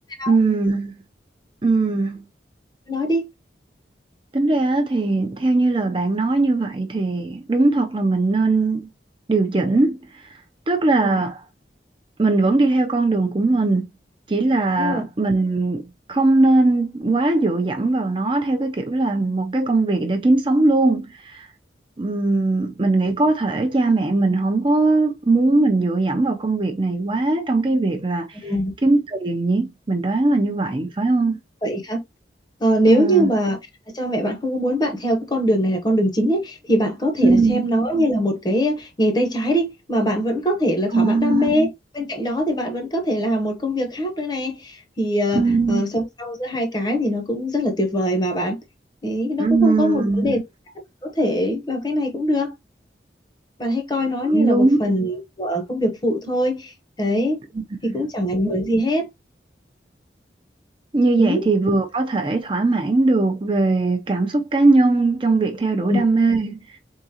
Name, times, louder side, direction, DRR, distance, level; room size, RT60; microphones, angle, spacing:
voice 1, 0.3-0.9 1.6-2.2 4.3-8.9 9.3-10.4 10.7-11.4 12.2-13.8 14.3-21.5 22.0-28.4 28.8-31.4 32.9-33.3 37.2-37.7 40.9-41.5 45.3-45.8 49.4-50.4 54.2-54.8 57.9-58.0 60.9-66.8, right 2 dB, 30° right, 0.5 m, -20 dB
voice 2, 2.9-3.2 11.0-11.2 14.8-15.1 28.4-28.7 31.6-32.0 32.6-33.6 33.9-41.7 41.9-48.6 49.0-50.4 51.0-52.5 53.6-57.4 57.8-59.0 61.2-61.4 65.9-66.0, equal, 25° left, 0.8 m, -22 dB
3.9 x 3.7 x 2.8 m
head